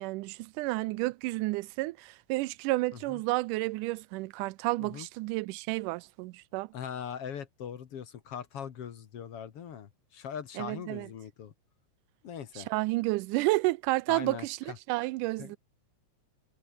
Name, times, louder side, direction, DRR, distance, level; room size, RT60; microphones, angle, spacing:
voice 1, 0.0-6.7 10.6-11.1 12.6-15.6, right 21 dB, 90° right, 2.1 m, -31 dB
voice 2, 6.7-11.5 12.2-12.7 14.1-14.8 15.4-15.5, left 8 dB, 55° left, 2.2 m, -41 dB
omnidirectional pair, 3.6 m